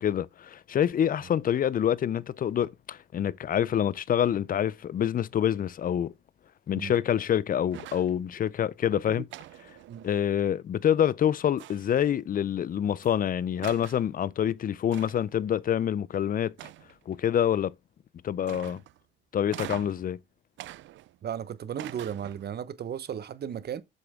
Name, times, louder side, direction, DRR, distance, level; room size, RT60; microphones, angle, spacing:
voice 1, 0.0-6.1 6.7-9.2 10.0-16.5 17.1-17.7 18.2-18.8 19.3-20.2, left 9 dB, 45° left, 0.5 m, -26 dB
sound 1, 7.7-8.2 9.3-10.4 11.6-12.1 13.0-13.1 13.6-14.1 14.9-15.4 16.6-17.1 18.5-19.0 19.5-20.1 20.6-21.4 21.8-22.5, right 15 dB, 75° right, 0.4 m, -44 dB
voice 2, 21.2-23.8, right 9 dB, 55° right, 1.0 m, -35 dB
7.9 x 7.0 x 3.6 m
cardioid pair, 90°, 20 cm